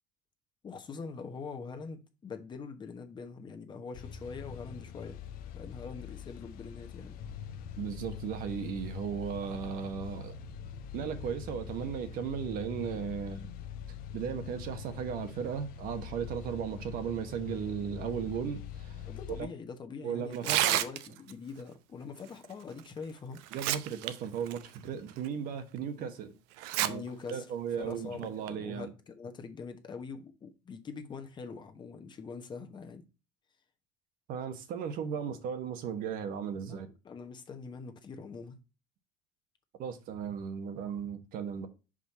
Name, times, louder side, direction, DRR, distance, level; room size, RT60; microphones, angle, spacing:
voice 1, 0.6-5.2 5.5-7.2 19.1-23.4 26.7-27.5 27.8-33.0 35.3-35.4 36.6-38.6, left 5 dB, 25° left, 1.0 m, -43 dB
sound 1, 3.9-19.4, left 7 dB, 55° left, 0.8 m, -43 dB
voice 2, 7.8-10.3 10.9-13.5 14.1-19.1 20.0-20.8 23.5-26.3 26.8-27.0 27.3-28.9 34.3-36.9 39.8-41.7, right 7 dB, 55° right, 1.1 m, -36 dB
Tearing, 20.3-21.3 22.8-22.9 23.4-24.1 24.5-24.6 25.2-25.3 26.6-26.9 27.3-27.4 28.2-28.5, right 13 dB, 75° right, 0.6 m, -29 dB
5.4 x 5.0 x 4.1 m
cardioid pair, 135°, 18 cm